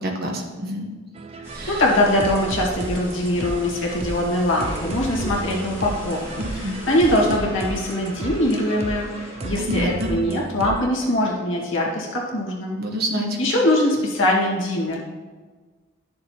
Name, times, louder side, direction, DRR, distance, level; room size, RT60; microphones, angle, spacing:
voice 1, 0.0-0.9 1.5-1.8 6.4-6.8 9.6-10.1 12.8-13.3, equal, 45° right, 1 dB, 1.2 m, -27 dB
sound 1, 1.1-10.9, right 3 dB, 30° right, 0.3 m, -33 dB
sound 2, 1.4-7.4, equal, 10° right, 1.7 m, -39 dB
voice 2, 1.7-9.1 9.4-12.8 13.4-15.1, left 1 dB, 60° left, -3 dB, 1.8 m, -22 dB
sound 3, 4.6-10.2, left 1 dB, 25° left, 1.7 m, -41 dB
11.5 x 6.6 x 2.9 m, 1.4 s
head